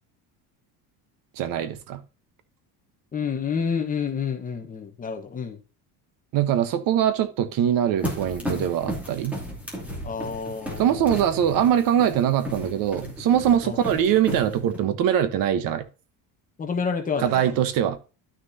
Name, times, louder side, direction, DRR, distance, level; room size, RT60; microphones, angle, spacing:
voice 1, 1.4-2.0 6.3-9.4 10.8-15.8 17.2-18.0, right 10 dB, 50° right, 1.1 m, -22 dB
voice 2, 3.1-5.6 8.4-8.7 10.0-11.3 13.6-13.8 16.6-17.5, left 6 dB, 20° left, 1.2 m, -29 dB
sound 1, 8.0-14.8, equal, 5° right, 2.5 m, -34 dB
11.5 x 6.4 x 2.8 m
cardioid pair, 170°, 42 cm